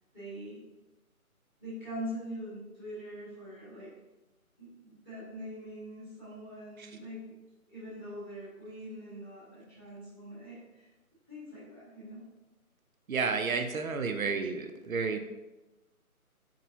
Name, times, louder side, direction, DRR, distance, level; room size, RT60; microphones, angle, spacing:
voice 1, 0.1-0.6 1.6-3.9 4.6-7.3 7.7-10.9 11.3-12.2, equal, 5° right, -11 dB, 1.4 m, -43 dB
voice 2, 13.1-15.2, right 5 dB, 70° right, 6 dB, 0.7 m, -31 dB
4.6 x 3.7 x 2.8 m, 1.1 s
figure-of-eight pair, 150°, 44 cm